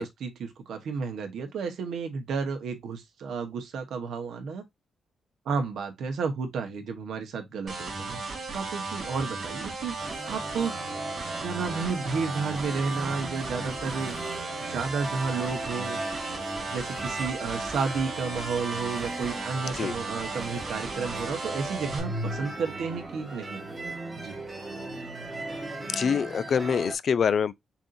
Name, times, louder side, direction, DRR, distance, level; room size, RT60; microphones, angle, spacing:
voice 1, 0.0-4.6 5.4-8.2 8.5-10.0 10.3-10.7 11.4-14.2 14.6-16.0 16.7-23.6 24.2-24.4, right 5 dB, 75° right, 1.2 m, -32 dB
sound 1, 7.7-22.0, right 3 dB, 40° right, 2.9 m, -36 dB
sound 2, 10.0-26.9, right 2 dB, 20° right, 1.3 m, -37 dB
voice 2, 25.9-27.5, left 7 dB, 45° left, 0.3 m, -25 dB
7.0 x 2.8 x 2.6 m
wide cardioid pair, 170°, 0 cm